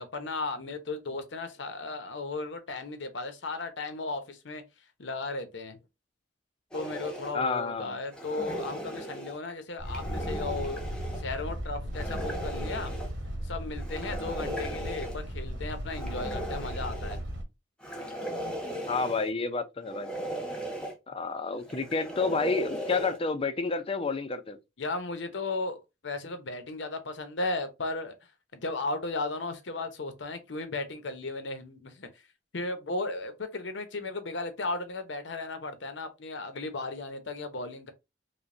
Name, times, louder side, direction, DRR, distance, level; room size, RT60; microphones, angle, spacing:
voice 1, 0.0-4.6 5.0-5.8 6.7-10.8 11.1-12.9 13.4-17.2 24.8-25.8 26.0-28.1 28.5-32.1 32.5-37.9, left 3 dB, 75° left, 0.8 m, -35 dB
sound 1, 6.7-7.3 8.1-9.4 9.8-11.2 11.9-13.1 13.8-15.2 15.9-17.2 17.8-19.3 19.8-20.9 21.6-23.2, equal, 5° left, 0.8 m, -37 dB
voice 2, 7.3-8.0 18.9-20.1 21.1-24.6, left 4 dB, 30° left, 0.5 m, -30 dB
sound 2, 9.8-17.4, equal, 80° right, 1.3 m, -36 dB
5.0 x 2.3 x 2.7 m
head